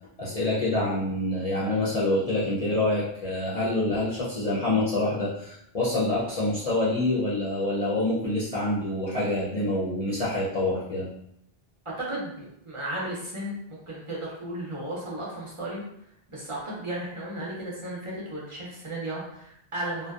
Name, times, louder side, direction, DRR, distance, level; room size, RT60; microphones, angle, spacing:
voice 1, 0.2-11.1, left 2 dB, 45° left, -7 dB, 0.5 m, -26 dB
voice 2, 11.8-15.8 16.3-20.1, right 1 dB, 40° right, -6 dB, 0.5 m, -34 dB
2.5 x 2.1 x 2.3 m, 0.76 s
omnidirectional pair, 1.0 m